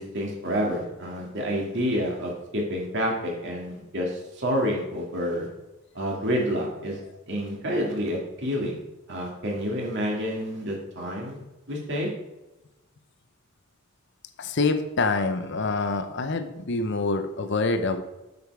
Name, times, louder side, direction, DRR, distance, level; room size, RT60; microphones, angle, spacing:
voice 1, 0.0-5.5 5.9-7.0 7.3-8.8 9.1-11.4 11.7-12.1, equal, 55° right, -1 dB, 2.3 m, -28 dB
voice 2, 14.4-18.0, left 3 dB, 55° left, 10 dB, 0.7 m, -26 dB
8.1 x 7.0 x 4.8 m, 1.0 s
head